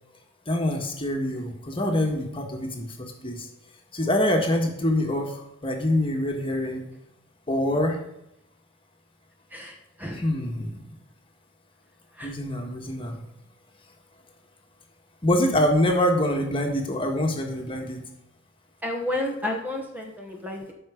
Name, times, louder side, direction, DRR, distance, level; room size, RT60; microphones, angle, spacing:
voice 1, 0.5-3.5 3.9-6.8 7.5-8.0 10.1-10.9 12.2-13.2 15.2-18.0, left 1 dB, 25° left, 2 dB, 1.5 m, -25 dB
voice 2, 9.5-10.2 12.2-12.3 18.8-20.7, left 1 dB, 10° right, 1 dB, 1.2 m, -31 dB
13.0 x 5.7 x 5.1 m, 0.82 s
head